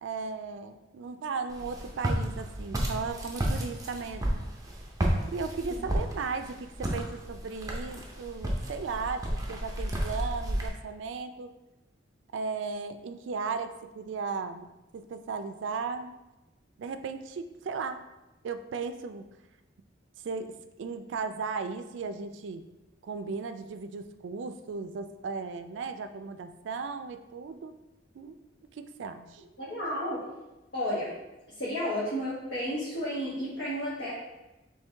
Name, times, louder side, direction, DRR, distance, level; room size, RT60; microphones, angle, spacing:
voice 1, 0.0-4.5 5.3-11.5 12.3-16.2 16.8-18.0 18.4-19.3 20.2-22.6 23.0-27.7 28.1-28.4 28.7-29.4, right 4 dB, 70° right, 9 dB, 0.3 m, -36 dB
Walk footsteps, 1.5-10.7, right 1 dB, 20° right, 0.6 m, -32 dB
voice 2, 29.6-30.2 30.7-31.1 31.6-34.1, equal, 70° left, -9 dB, 1.2 m, -32 dB
4.5 x 3.1 x 3.3 m, 1.0 s
head